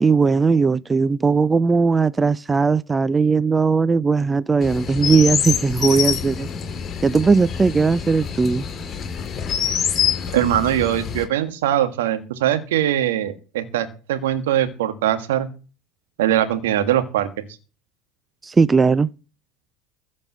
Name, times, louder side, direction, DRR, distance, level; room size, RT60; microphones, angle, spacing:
voice 1, 0.0-6.5 7.0-8.7 18.4-19.1, right 4 dB, 20° right, 0.6 m, -18 dB
Chirp tweet, 4.6-11.2, left 7 dB, 35° left, 5.4 m, -26 dB
voice 2, 10.3-15.5 16.2-17.3, right 11 dB, 80° right, 1.7 m, -21 dB
15.0 x 5.3 x 8.6 m
hypercardioid pair, 80°, 0 cm